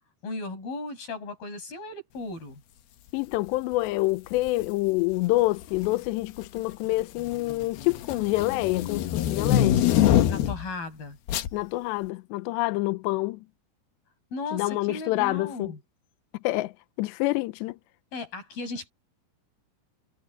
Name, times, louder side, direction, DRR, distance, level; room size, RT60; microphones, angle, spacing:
voice 1, 0.2-2.6 10.3-11.2 14.3-15.8 18.1-18.9, left 3 dB, 50° left, 7.9 m, -36 dB
voice 2, 3.1-9.8 11.5-13.4 14.5-15.7 16.4-16.7 17.0-17.8, left 20 dB, 85° left, 2.6 m, -27 dB
sound 1, 4.4-4.7 5.6-6.1 6.4-10.7 11.3-11.5, left 11 dB, 70° left, 2.6 m, -24 dB
omnidirectional pair, 5.6 m